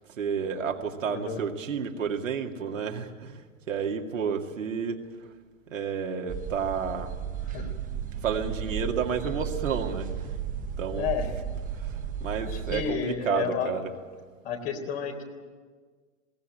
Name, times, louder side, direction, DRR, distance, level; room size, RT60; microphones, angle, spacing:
voice 1, 0.1-5.3 5.7-7.2 8.2-10.4 10.8-11.1 11.7-13.9, right 6 dB, 75° right, 3 dB, 2.3 m, -31 dB
voice 2, 1.0-1.4 7.5-7.8 11.0-11.3 12.3-13.8 14.4-15.2, left 7 dB, 55° left, 3 dB, 4.0 m, -31 dB
sound 1, 6.3-12.9, right 8 dB, 20° right, 1.4 m, -34 dB
21.0 x 18.0 x 9.1 m, 1.5 s
hypercardioid pair, 110°, 39 cm